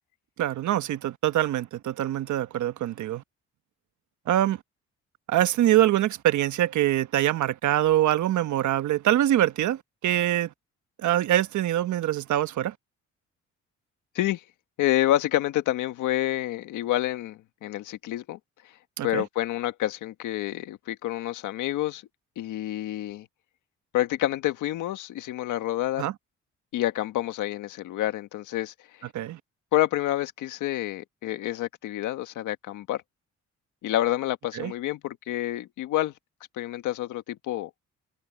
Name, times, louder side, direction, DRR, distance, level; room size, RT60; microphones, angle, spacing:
voice 1, 0.4-3.2 4.3-4.6 5.3-10.5 11.0-12.7 19.0-19.2 26.0-26.1 29.1-29.4 34.5-34.7, right 13 dB, 75° right, 1.2 m, -24 dB
voice 2, 14.8-18.4 19.0-22.0 22.4-23.3 23.9-26.0 26.7-28.7 29.7-33.0 33.8-36.1 36.6-37.7, left 14 dB, 90° left, 1.6 m, -28 dB
cardioid pair, 90°, 30 cm